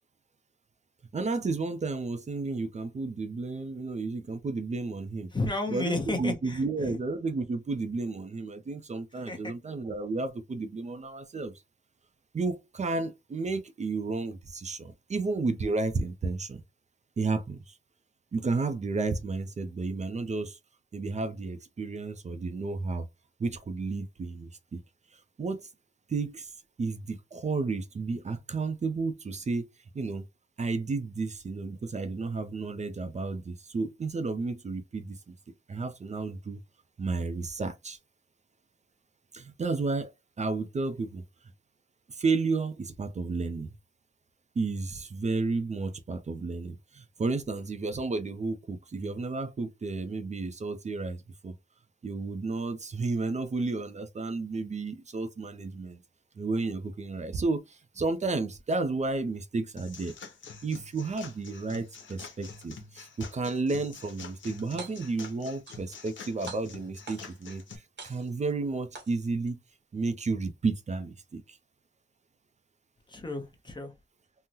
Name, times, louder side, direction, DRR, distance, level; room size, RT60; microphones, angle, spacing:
voice 1, 1.1-5.3 5.7-11.5 12.3-16.6 17.2-17.8 18.3-20.6 20.9-23.1 23.4-24.8 25.1-25.7 26.1-26.5 26.8-29.7 29.9-30.3 30.6-35.3 35.7-36.6 37.0-38.0 39.3-41.2 42.1-43.8 44.6-51.5 52.0-56.0 56.4-60.1 60.6-69.6 69.9-71.6, right 3 dB, 35° right, 0.4 m, -32 dB
voice 2, 5.3-7.0 9.3-9.5 73.1-73.9, left 2 dB, 25° left, 0.7 m, -32 dB
sound 1, 59.8-67.8, left 5 dB, 85° left, 0.7 m, -47 dB
sound 2, 64.6-65.2 65.7-66.2 66.5-67.5 68.0-68.5 68.9-69.5, right 4 dB, 75° right, 0.9 m, -45 dB
3.6 x 2.0 x 2.8 m
wide cardioid pair, 155°, 19 cm